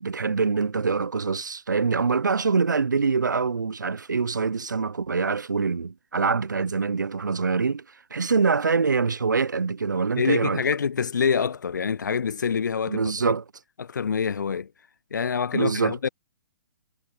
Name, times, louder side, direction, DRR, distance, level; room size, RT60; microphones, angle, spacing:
voice 1, 0.0-7.8 8.1-10.6 12.9-13.4 15.5-16.0, right 5 dB, 85° right, 0.7 m, -24 dB
voice 2, 10.2-13.4 13.8-14.7 15.1-16.1, left 6 dB, 80° left, 0.4 m, -26 dB
hypercardioid pair, 130°, 10 cm